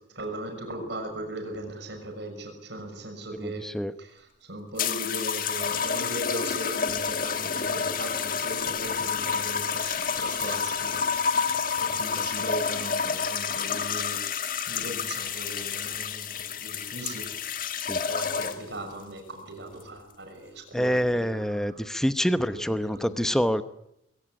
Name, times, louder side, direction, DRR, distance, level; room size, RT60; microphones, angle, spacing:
voice 1, 0.1-3.7 4.0-11.0 11.8-14.2 14.7-17.3 18.1-22.0 22.4-23.4, right 1 dB, 65° right, 3 dB, 6.2 m, -38 dB
voice 2, 3.4-3.9 12.2-12.3 17.9-18.0 20.7-23.6, equal, 5° left, 11 dB, 0.9 m, -26 dB
sound 1, 4.8-18.8 19.7-20.0, left 6 dB, 45° left, 1.6 m, -29 dB
22.0 x 17.0 x 9.9 m, 0.80 s
head